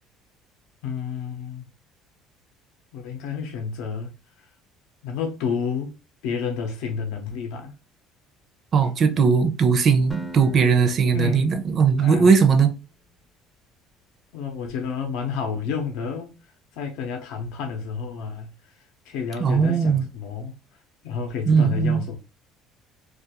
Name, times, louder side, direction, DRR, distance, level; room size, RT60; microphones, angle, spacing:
voice 1, 0.8-1.6 2.9-4.1 5.0-5.9 6.2-7.7 11.1-11.5 12.0-12.3 14.3-16.4 16.7-18.5 19.1-20.6 21.0-22.2, left 6 dB, 80° left, 0.6 m, -30 dB
voice 2, 8.7-12.7 19.4-20.0 21.5-22.0, right 5 dB, 40° right, 0.5 m, -19 dB
Acoustic guitar, 10.1-13.1, equal, 5° left, 0.4 m, -43 dB
2.4 x 2.3 x 2.8 m
cardioid pair, 120°, 0 cm